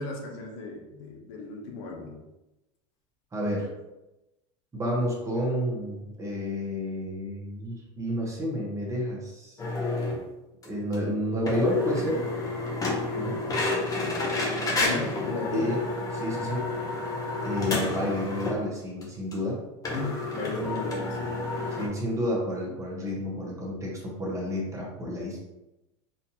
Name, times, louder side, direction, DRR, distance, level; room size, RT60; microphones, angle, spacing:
voice 1, 0.0-2.2 13.9-14.2 14.8-15.7 19.9-21.4, left 3 dB, 80° left, 1 dB, 0.9 m, -35 dB
voice 2, 3.3-3.7 4.7-9.6 10.6-12.2 13.1-13.4 15.5-15.9 16.1-16.7 17.4-19.6 21.7-25.4, left 1 dB, 20° right, -3 dB, 1.0 m, -30 dB
sound 1, 9.6-10.2 10.6-10.7 10.9-11.0 11.5-18.6 19.0-19.1 19.3-19.4 19.8-21.9, left 2 dB, 20° left, 0.9 m, -30 dB
4.1 x 2.6 x 2.8 m, 0.97 s
supercardioid pair, 130°, 16 cm